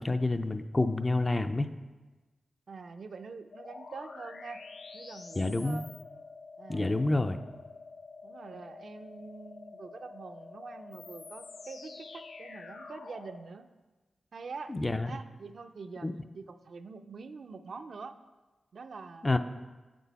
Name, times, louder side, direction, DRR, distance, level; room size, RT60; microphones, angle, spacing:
voice 1, 0.0-1.7 5.4-5.8 6.7-7.4 14.7-15.1 16.0-16.1 19.2-19.4, left 2 dB, 20° left, 9 dB, 0.3 m, -28 dB
voice 2, 2.7-4.7 4.9-5.9 6.6-7.4 8.2-13.7 14.3-14.7 15.1-16.1 16.3-18.2 18.7-19.4, right 4 dB, 60° right, 8 dB, 0.4 m, -45 dB
sound 1, 3.5-13.4, left 4 dB, 90° left, 0.6 m, -48 dB
7.7 x 6.1 x 4.1 m, 1.2 s
wide cardioid pair, 145°, 0 cm